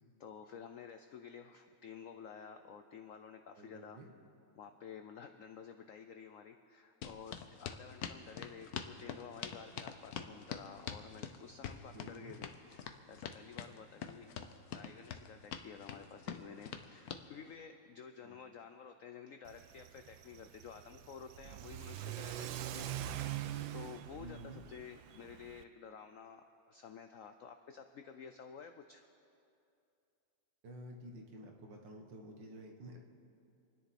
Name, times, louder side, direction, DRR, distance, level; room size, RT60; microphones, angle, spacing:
voice 1, 0.2-4.0 4.6-14.3 14.7-29.1, left 7 dB, 80° left, 7 dB, 0.7 m, -52 dB
voice 2, 3.5-4.1 11.9-12.4 18.2-18.4 24.2-24.6 30.6-33.0, right 1 dB, 70° right, 2 dB, 2.0 m, -51 dB
sound 1, 7.0-17.2, left 8 dB, 60° left, 1.1 m, -44 dB
Car / Accelerating revving vroom, 19.5-25.6, right 12 dB, 90° right, 1.4 m, -44 dB
27.5 x 10.0 x 4.2 m, 2.6 s
omnidirectional pair, 2.1 m